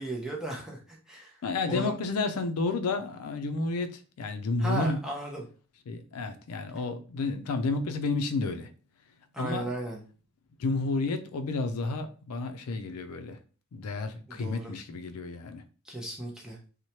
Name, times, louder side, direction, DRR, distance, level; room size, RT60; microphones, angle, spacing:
voice 1, 0.0-1.4 1.7-1.9 4.6-5.5 9.3-10.0 14.3-14.7 15.8-16.6, right 2 dB, 5° right, 0.6 m, -35 dB
voice 2, 1.4-5.0 5.9-8.7 9.4-9.7 10.6-13.4 13.7-15.6, left 3 dB, 90° left, 0.4 m, -31 dB
3.0 x 2.1 x 2.7 m
head